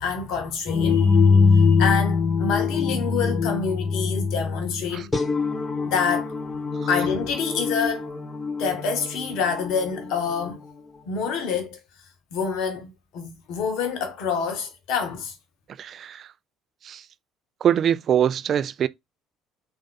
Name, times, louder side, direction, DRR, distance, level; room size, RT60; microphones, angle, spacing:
voice 1, 0.0-5.1 5.8-6.3 6.9-8.1 8.6-10.6 11.1-11.8 12.3-15.3, left 6 dB, 60° left, 0.9 m, -27 dB
sound 1, 0.7-10.6, left 5 dB, 25° left, 0.9 m, -23 dB
voice 2, 15.8-16.3 16.8-17.1 17.6-18.9, right 9 dB, 50° right, 0.3 m, -23 dB
3.6 x 2.6 x 3.7 m
figure-of-eight pair, 55°, 0 cm